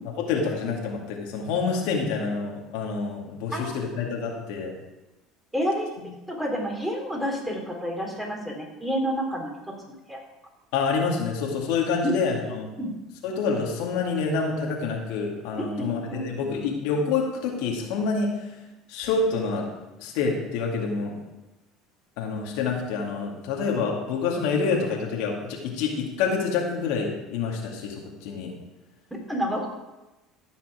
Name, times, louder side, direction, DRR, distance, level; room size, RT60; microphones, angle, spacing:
voice 1, 0.3-4.7 6.0-6.1 10.7-12.7 13.2-18.4 18.9-19.7 20.0-21.2 22.2-28.5, left 4 dB, 75° left, -1 dB, 2.2 m, -27 dB
voice 2, 5.5-9.5 10.1-10.2 12.0-12.1 12.8-12.9 15.6-16.6 29.3-29.7, equal, 5° right, -2 dB, 3.7 m, -29 dB
15.5 x 5.8 x 5.0 m, 1.0 s
supercardioid pair, 95°, 0 cm